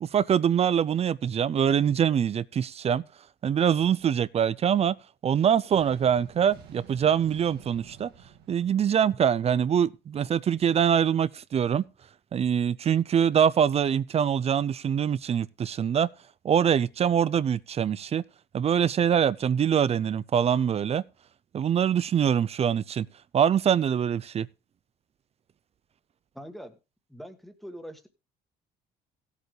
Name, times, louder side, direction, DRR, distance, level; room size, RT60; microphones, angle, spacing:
voice 1, 0.0-3.0 3.4-5.0 5.2-8.1 8.5-11.8 12.3-16.1 16.4-18.2 18.5-21.0 21.5-23.1 23.3-24.5, right 8 dB, 35° right, 0.5 m, -24 dB
sound 1, 5.7-9.7, right 8 dB, 80° right, 2.1 m, -50 dB
voice 2, 26.3-26.8 27.1-28.1, equal, ahead, 1.8 m, -43 dB
16.5 x 8.2 x 3.2 m
cardioid pair, 110°, 17 cm